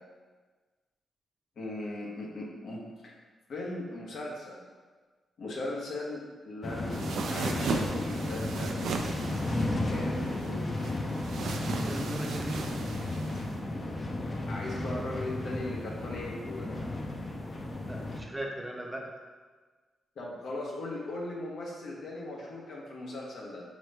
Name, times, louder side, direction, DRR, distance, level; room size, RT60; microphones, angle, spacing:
voice 1, 1.6-3.1 3.5-4.6 5.4-8.9 9.9-11.0 14.5-16.7 20.2-23.6, left 2 dB, 75° left, -3 dB, 1.1 m, -38 dB
sound 1, 6.6-18.2, left 2 dB, 35° left, 0.6 m, -34 dB
sound 2, 6.9-13.5, right 4 dB, 85° right, 0.4 m, -36 dB
voice 2, 11.8-12.7 17.9-19.0, right 1 dB, 10° right, 0 dB, 0.6 m, -38 dB
5.2 x 3.1 x 3.3 m, 1.4 s
cardioid pair, 90°, 0 cm